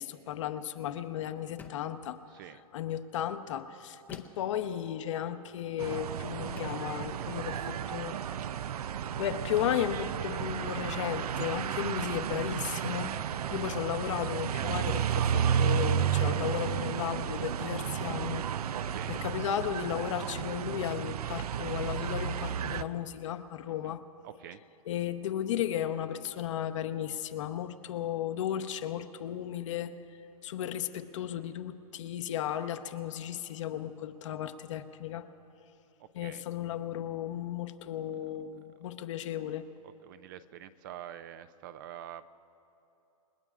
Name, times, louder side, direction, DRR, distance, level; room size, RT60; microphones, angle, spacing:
voice 1, 0.0-2.2 2.7-7.6 7.9-8.2 9.2-13.2 13.5-15.0 15.6-18.5 19.1-24.0 24.9-29.9 30.4-35.3 36.1-39.6, left 10 dB, 55° left, 9 dB, 0.9 m, -34 dB
sound 1, 1.6-2.0 4.1-4.5 5.9-6.0 6.6-6.9, left 5 dB, 10° left, 0.6 m, -49 dB
voice 2, 2.3-2.6 7.2-7.7 15.1-15.3 18.7-19.2 23.7-23.9 24.2-24.6 36.0-36.4 39.8-42.3, right 11 dB, 35° right, 13 dB, 0.4 m, -46 dB
sound 2, 5.8-22.8, right 8 dB, 85° right, 0.6 m, -32 dB
30.0 x 19.0 x 2.5 m, 3.0 s
hypercardioid pair, 155°, 19 cm